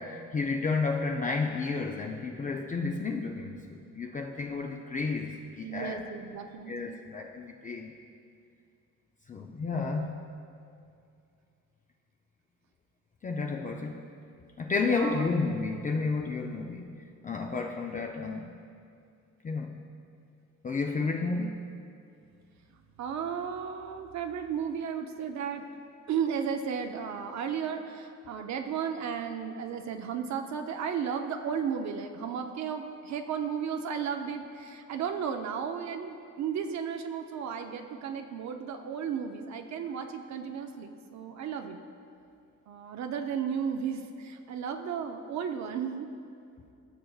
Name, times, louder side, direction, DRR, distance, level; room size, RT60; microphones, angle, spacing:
voice 1, 0.0-6.0 6.7-7.9 9.3-10.2 13.2-14.0 14.6-16.9 17.2-18.6 19.4-19.8 20.6-21.7, left 4 dB, 25° left, 1 dB, 0.5 m, -31 dB
voice 2, 5.6-7.0 14.8-15.3 23.0-25.7 26.1-41.8 42.7-46.1, right 7 dB, 65° right, 5 dB, 0.6 m, -34 dB
14.0 x 6.5 x 2.4 m, 2.5 s
cardioid pair, 90°, 30 cm